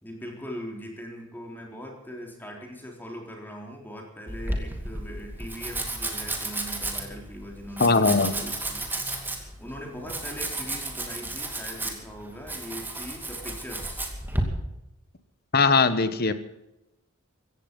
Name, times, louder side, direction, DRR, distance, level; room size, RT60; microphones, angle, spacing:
voice 1, 0.0-8.9 9.6-14.1, equal, 10° left, 1 dB, 3.8 m, -40 dB
Domestic sounds home sounds, 4.3-14.4, right 2 dB, 10° right, 2.5 m, -33 dB
voice 2, 7.8-8.3 15.5-16.3, left 4 dB, 45° left, 12 dB, 1.3 m, -20 dB
16.5 x 15.5 x 5.4 m, 0.91 s
head